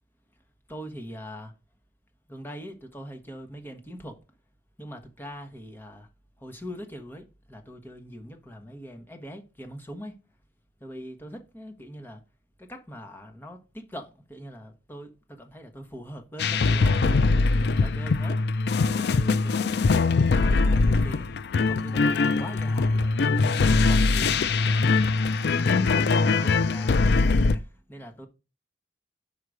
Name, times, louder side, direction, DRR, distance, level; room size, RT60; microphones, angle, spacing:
voice 1, 0.7-1.5 2.3-4.2 4.8-6.1 6.4-10.2 10.8-12.2 12.6-17.3 17.8-18.4 18.8-21.3 21.6-24.9 25.5-28.3, equal, 10° left, 1.2 m, -42 dB
sound 1, 16.4-27.6, left 3 dB, 60° left, 0.4 m, -22 dB
5.6 x 4.9 x 6.4 m
head